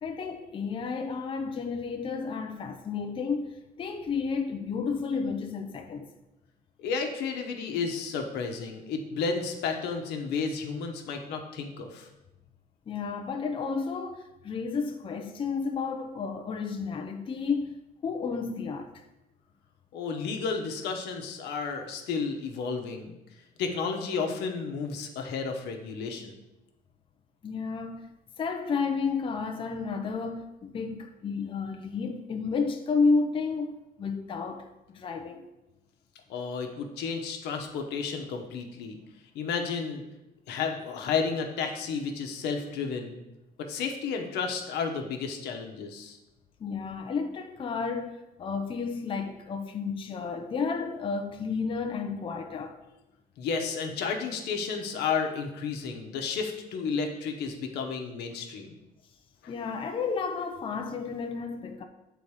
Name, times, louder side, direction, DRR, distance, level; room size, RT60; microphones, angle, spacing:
voice 1, 0.0-6.1 12.9-17.8 18.0-19.0 27.4-28.1 28.4-35.5 46.6-52.8 59.5-61.8, left 5 dB, 30° left, 0.5 m, -31 dB
voice 2, 6.8-12.1 19.9-23.2 23.6-26.4 36.3-39.0 39.3-40.0 40.5-43.2 43.6-46.2 53.4-58.7 59.4-59.5, left 5 dB, 80° left, 1.0 m, -32 dB
7.1 x 3.9 x 4.8 m
cardioid pair, 110°, 17 cm